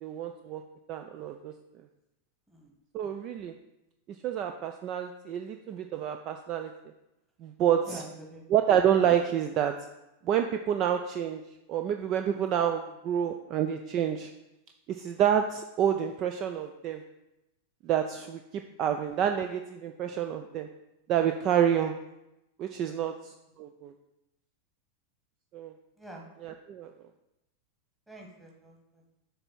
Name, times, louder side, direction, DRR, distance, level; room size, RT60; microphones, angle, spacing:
voice 1, 0.0-0.6 0.9-1.5 2.9-3.5 4.2-6.7 7.4-8.0 8.5-9.7 10.2-11.4 11.7-14.3 14.9-17.0 17.8-20.7 21.1-21.9 22.6-23.1 23.6-23.9 25.5-25.7 26.4-26.9, right 9 dB, 35° right, 6 dB, 0.3 m, -28 dB
voice 2, 7.8-8.6 18.6-18.8 21.8-21.9 22.8-23.0 26.0-26.3 28.1-29.1, right 1 dB, 5° right, -1 dB, 1.4 m, -47 dB
6.7 x 3.5 x 5.8 m, 0.91 s
figure-of-eight pair, 90°, 0 cm